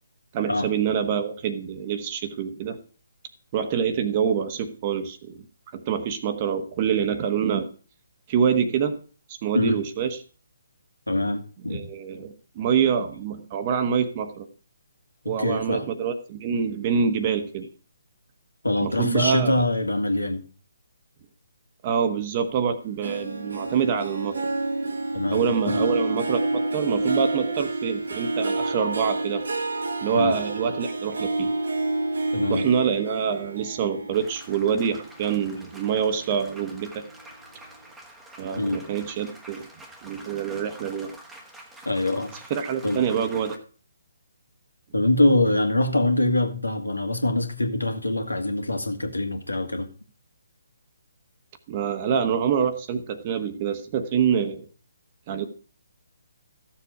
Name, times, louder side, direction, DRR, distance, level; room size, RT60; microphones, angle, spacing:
voice 1, 0.3-2.8 3.5-5.3 5.7-7.7 8.3-9.0 9.3-10.2 11.7-14.5 15.2-17.7 18.8-19.5 21.8-24.4 25.3-29.4 30.0-31.5 32.5-37.0 38.4-39.7 40.0-41.1 42.5-43.6 51.7-54.7 55.3-55.5, right 7 dB, 30° right, 9 dB, 1.2 m, -26 dB
voice 2, 11.1-11.9 15.2-15.9 18.6-20.4 25.1-25.9 30.1-30.3 32.3-32.6 38.6-38.8 41.9-42.3 42.8-43.1 44.9-49.9, left 1 dB, 80° left, 5 dB, 2.1 m, -24 dB
Harp, 23.0-35.7 36.2-36.6 37.0-37.1, right 2 dB, 65° right, 1.6 m, -29 dB
sound 1, 34.1-43.6, right 1 dB, 5° right, 1.4 m, -47 dB
14.0 x 7.3 x 4.9 m, 0.39 s
figure-of-eight pair, 140°, 0 cm